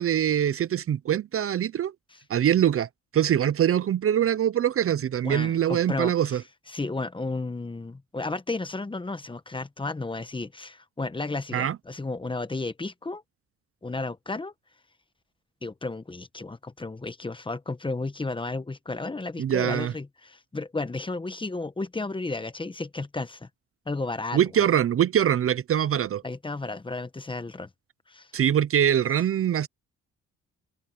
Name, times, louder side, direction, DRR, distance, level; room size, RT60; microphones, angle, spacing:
voice 1, 0.0-1.9 2.3-6.4 11.5-11.8 19.4-19.9 24.3-26.2 28.3-29.7, right 10 dB, 45° right, 0.7 m, -23 dB
voice 2, 5.2-6.4 6.7-13.2 13.8-14.5 15.6-23.5 23.9-24.7 26.2-27.7 28.1-28.3, left 3 dB, 15° left, 1.2 m, -33 dB
open air
cardioid pair, 90°, 30 cm